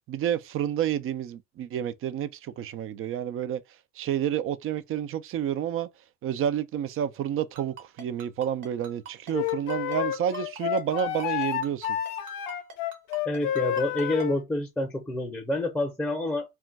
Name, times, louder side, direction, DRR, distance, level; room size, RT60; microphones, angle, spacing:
voice 1, 0.1-3.6 4.0-5.9 6.2-12.0, right 10 dB, 45° right, 0.4 m, -29 dB
Ringtone, 7.6-14.3, right 5 dB, 65° right, 1.1 m, -43 dB
Wind instrument woodwind instrument, 9.3-14.4, left 11 dB, 75° left, 0.5 m, -30 dB
voice 2, 13.2-16.4, left 1 dB, 5° left, 0.6 m, -28 dB
2.3 x 2.1 x 3.8 m
supercardioid pair, 85°, 31 cm